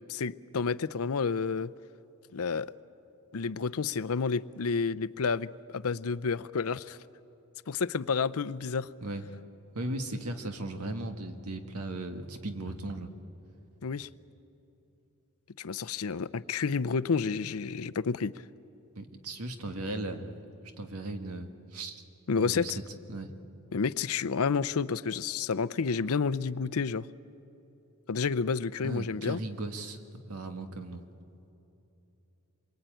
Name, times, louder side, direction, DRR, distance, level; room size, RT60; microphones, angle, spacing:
voice 1, 0.1-1.7 2.3-2.7 3.3-7.0 7.7-8.9 13.8-14.1 15.6-18.4 22.3-22.8 23.7-27.1 28.1-29.4, left 5 dB, 75° left, 0.6 m, -30 dB
voice 2, 9.7-13.1 19.0-20.4 20.8-22.0 22.4-22.7 23.1-23.3 28.8-30.0 30.3-31.0, right 2 dB, 85° right, 1.8 m, -37 dB
27.0 x 23.5 x 9.1 m
head